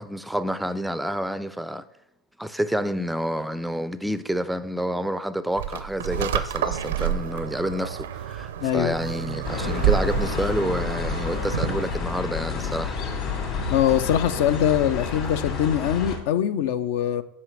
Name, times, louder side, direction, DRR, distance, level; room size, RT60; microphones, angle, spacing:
voice 1, 0.0-1.8 2.4-13.0, equal, 5° right, 0.4 m, -28 dB
sound 1, 5.6-11.9, right 10 dB, 80° right, 0.5 m, -29 dB
voice 2, 8.6-8.9 13.7-17.2, left 10 dB, 65° left, 0.4 m, -22 dB
sound 2, 9.4-16.2, left 5 dB, 50° left, 2.3 m, -29 dB
5.6 x 5.2 x 6.3 m
hypercardioid pair, 95°, 0 cm